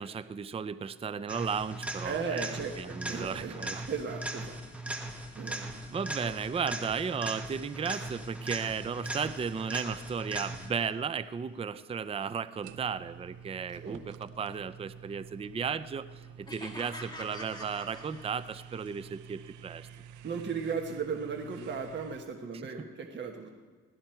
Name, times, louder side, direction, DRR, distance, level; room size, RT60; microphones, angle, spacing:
voice 1, 0.0-2.5 2.8-3.8 5.9-16.1 16.4-19.9, right 6 dB, 20° right, 14 dB, 0.4 m, -35 dB
sound 1, 1.3-10.9 18.9-19.0, right 1 dB, 5° right, 1.5 m, -39 dB
voice 2, 2.0-4.6 5.3-5.8 13.8-14.0 20.2-23.5, right 5 dB, 35° right, 2 dB, 1.3 m, -36 dB
sound 2, 12.6-22.2, right 8 dB, 90° right, 0.7 m, -49 dB
sound 3, 16.5-18.8, left 1 dB, 15° left, 2.2 m, -45 dB
17.5 x 12.5 x 4.5 m, 1.4 s
cardioid pair, 90°, 30 cm